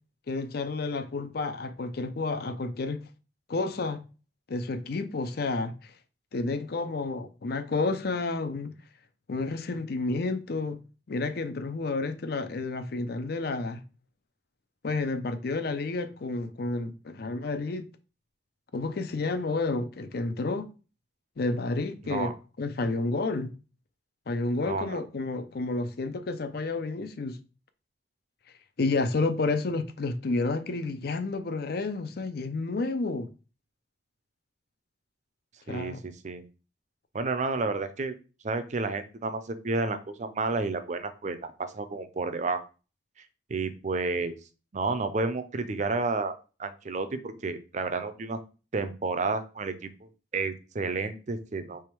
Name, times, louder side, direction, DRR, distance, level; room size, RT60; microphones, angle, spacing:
voice 1, 0.3-3.1 3.5-4.0 4.5-5.9 6.3-8.7 9.3-10.8 11.1-13.8 14.8-17.9 18.7-20.7 21.4-22.3 22.6-23.5 24.3-27.4 28.8-33.3 35.7-36.0, left 3 dB, 60° left, 0.5 m, -30 dB
voice 2, 24.6-25.0 35.7-36.4 37.1-38.1 38.4-42.6 43.2-44.4 44.7-48.4 48.7-51.8, right 3 dB, 40° right, 0.5 m, -31 dB
3.5 x 3.2 x 4.5 m
head